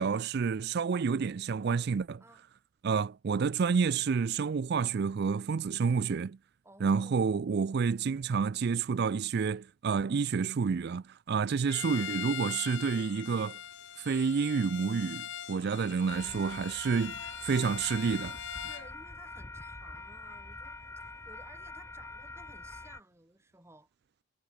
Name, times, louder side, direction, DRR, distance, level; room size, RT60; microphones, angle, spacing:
voice 1, 0.0-2.2 2.8-6.4 6.8-13.6 14.0-17.2 17.4-18.4, right 5 dB, 50° right, 0.4 m, -29 dB
voice 2, 6.6-7.4 16.1-16.9 18.7-20.8 21.2-23.9, right 1 dB, 10° right, 5.0 m, -57 dB
Bowed string instrument, 11.7-18.9, left 10 dB, 55° left, 0.8 m, -42 dB
sound 1, 16.1-23.0, left 2 dB, 10° left, 0.7 m, -45 dB
head